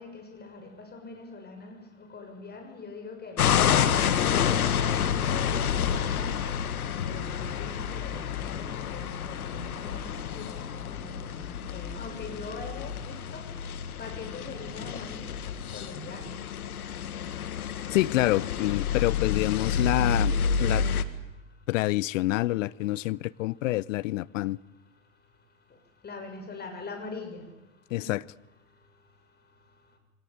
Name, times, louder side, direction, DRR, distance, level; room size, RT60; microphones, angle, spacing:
voice 1, 0.0-1.8 2.1-3.5 3.7-6.3 7.0-13.4 14.0-15.2 15.7-16.3 26.0-27.4 27.9-28.1, left 3 dB, 20° left, 6.7 m, -42 dB
sound 1, 3.4-21.0, left 7 dB, 90° left, 1.7 m, -29 dB
voice 2, 17.9-20.3 20.6-20.9 21.7-24.6 27.9-28.2, left 18 dB, 60° left, 0.8 m, -27 dB
24.0 x 18.5 x 9.5 m
hypercardioid pair, 110°, 42 cm